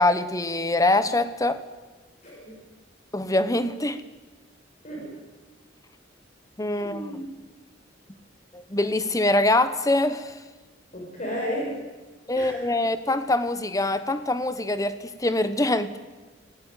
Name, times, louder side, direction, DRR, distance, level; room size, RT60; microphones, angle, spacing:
voice 1, 0.0-1.6 3.1-4.0 6.6-7.2 8.5-10.4 12.3-16.0, left 2 dB, 20° left, 11 dB, 1.2 m, -24 dB
voice 2, 2.2-2.6 4.8-5.1 6.8-7.3 10.9-11.8 12.4-12.6, equal, 40° left, -2 dB, 7.1 m, -33 dB
25.5 x 18.0 x 9.3 m, 1.3 s
head